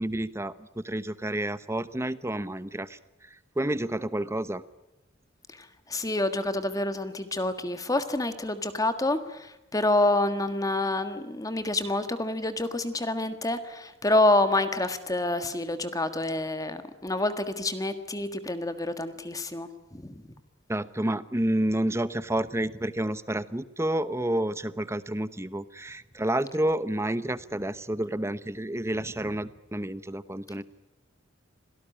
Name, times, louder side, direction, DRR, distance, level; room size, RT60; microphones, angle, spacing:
voice 1, 0.0-3.0 3.6-4.6 20.7-30.6, right 1 dB, 15° right, 14 dB, 0.9 m, -29 dB
voice 2, 5.5-20.2, left 2 dB, 15° left, 9 dB, 1.6 m, -28 dB
26.5 x 18.0 x 9.9 m, 0.97 s
head